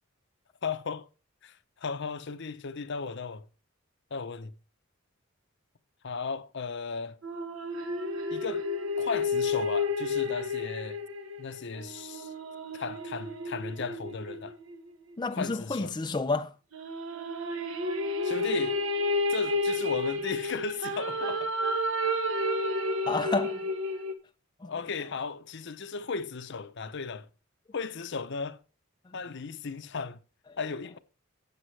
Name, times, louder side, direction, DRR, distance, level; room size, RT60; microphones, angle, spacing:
voice 1, 0.6-1.1 1.4-3.4 4.1-4.5 6.0-7.2 8.3-8.7 9.0-11.0 11.4-12.3 12.7-14.6 15.3-15.9 18.2-18.8 19.3-21.5 24.6-27.3 27.7-28.6 29.1-30.2 30.6-31.0, left 4 dB, 60° left, 0.8 m, -35 dB
sound 1, 7.2-14.9 16.7-24.1, left 2 dB, 70° right, 1.4 m, -31 dB
voice 2, 15.2-16.5 23.1-23.6 24.6-24.7, left 3 dB, 20° left, 0.5 m, -30 dB
12.5 x 8.5 x 3.3 m
head